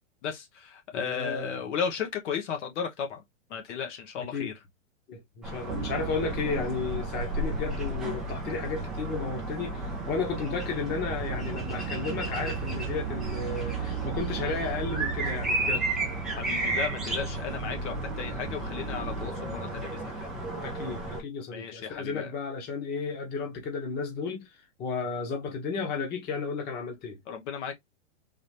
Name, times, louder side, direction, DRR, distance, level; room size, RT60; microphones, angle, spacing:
voice 1, 0.2-3.2 3.5-4.5 16.4-20.3 21.5-22.3 27.3-27.7, left 7 dB, 60° left, 1.2 m, -34 dB
voice 2, 0.9-1.7 4.2-4.5 5.1-15.9 17.4-17.8 20.6-24.5 24.8-27.2, left 4 dB, 25° left, 1.2 m, -33 dB
sound 1, 5.4-21.2, right 2 dB, ahead, 0.3 m, -34 dB
sound 2, 5.7-19.3, right 6 dB, 45° right, 0.7 m, -37 dB
4.0 x 2.6 x 3.3 m
hypercardioid pair, 140°, 39 cm